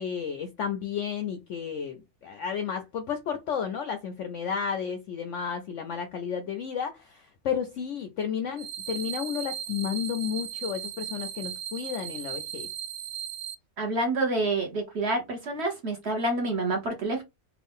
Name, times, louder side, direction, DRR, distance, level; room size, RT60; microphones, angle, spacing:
voice 1, 0.0-12.7, left 7 dB, 70° left, 0.7 m, -32 dB
sound 1, 8.6-13.5, right 10 dB, 70° right, 0.8 m, -37 dB
voice 2, 13.8-17.2, right 2 dB, 45° right, 1.1 m, -28 dB
3.5 x 2.4 x 3.5 m
omnidirectional pair, 1.7 m